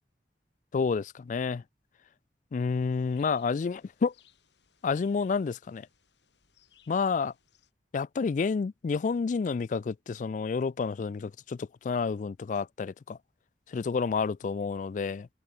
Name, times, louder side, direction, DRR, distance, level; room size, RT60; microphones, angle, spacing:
voice 1, 0.7-1.6 2.5-4.1 4.8-5.9 6.9-7.3 7.9-13.2 13.7-15.3, left 5 dB, 45° left, 0.3 m, -29 dB
sound 1, 2.7-7.7, left 9 dB, 80° left, 3.4 m, -66 dB
head